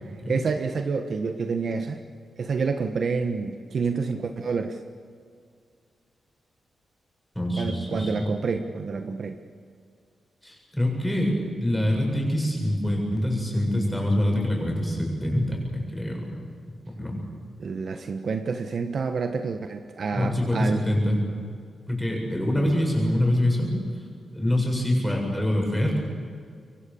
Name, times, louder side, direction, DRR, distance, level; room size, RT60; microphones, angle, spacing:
voice 1, 0.3-2.0 2.4-4.8 7.6-9.4 17.6-20.8, right 4 dB, 50° right, 6 dB, 1.3 m, -28 dB
voice 2, 7.4-8.1 10.4-16.3 16.9-17.2 20.1-21.2 21.9-23.7 24.3-26.0, left 1 dB, 5° left, -1 dB, 7.5 m, -25 dB
26.5 x 23.0 x 7.1 m, 2.1 s
wide cardioid pair, 130°, 0 cm